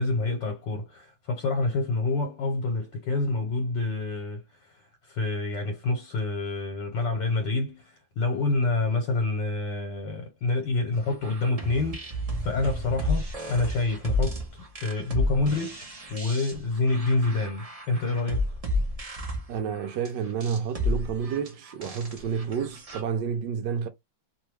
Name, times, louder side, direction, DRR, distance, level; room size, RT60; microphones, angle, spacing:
voice 1, 0.0-4.8 5.1-14.4 14.8-18.5, left 3 dB, 70° left, 1.5 m, -27 dB
sound 1, 11.1-23.0, left 1 dB, 45° right, 0.4 m, -32 dB
voice 2, 19.5-23.9, right 7 dB, 75° right, 1.1 m, -30 dB
3.3 x 2.2 x 3.1 m
omnidirectional pair, 2.1 m